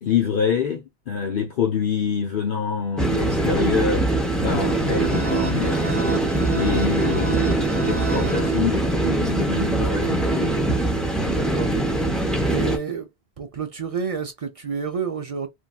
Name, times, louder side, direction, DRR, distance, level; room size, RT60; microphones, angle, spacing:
voice 1, 0.0-4.1 4.4-5.8 6.5-10.6, left 7 dB, 60° left, 0.8 m, -26 dB
sound 1, 3.0-12.8, right 2 dB, ahead, 0.6 m, -22 dB
sound 2, 4.4-9.1, right 6 dB, 70° right, 0.8 m, -30 dB
voice 2, 11.2-11.7 12.5-13.1 13.4-15.5, right 5 dB, 45° right, 0.5 m, -29 dB
3.0 x 2.6 x 2.3 m
omnidirectional pair, 1.1 m